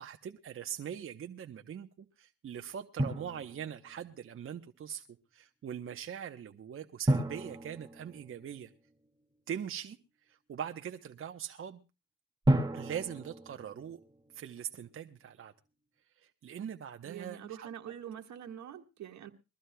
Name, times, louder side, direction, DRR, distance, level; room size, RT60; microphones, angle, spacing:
voice 1, 0.0-5.1 5.3-8.7 9.5-10.0 10.2-11.8 12.7-14.0 14.3-15.5 16.2-17.7, right 9 dB, 45° right, 0.8 m, -42 dB
Drum, 3.0-4.1 7.1-8.9 12.4-14.4, right 1 dB, 15° right, 2.0 m, -32 dB
voice 2, 17.0-19.3, right 9 dB, 65° right, 1.7 m, -44 dB
22.5 x 14.5 x 2.2 m
cardioid pair, 90°, 30 cm